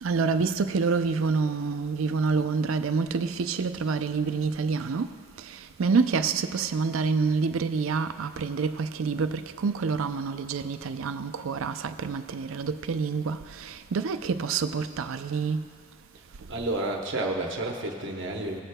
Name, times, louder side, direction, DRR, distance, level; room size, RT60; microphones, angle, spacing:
voice 1, 0.0-5.1 5.4-15.7, right 5 dB, 75° right, 0.4 m, -27 dB
voice 2, 16.5-18.6, right 2 dB, 55° right, 1.0 m, -30 dB
19.0 x 8.1 x 2.2 m
head